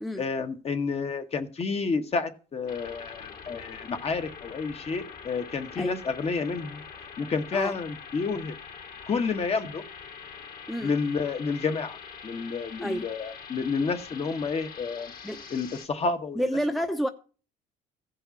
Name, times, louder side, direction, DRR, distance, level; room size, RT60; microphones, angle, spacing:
voice 1, 0.2-6.8 7.2-8.5 9.1-9.8 10.8-12.0 12.2-15.1 15.5-16.4, left 4 dB, 35° left, 1.4 m, -30 dB
sound 1, 2.7-15.9, left 6 dB, 55° left, 3.0 m, -44 dB
voice 2, 16.3-17.1, equal, ahead, 0.9 m, -29 dB
15.0 x 5.6 x 7.1 m
cardioid pair, 110°, 17 cm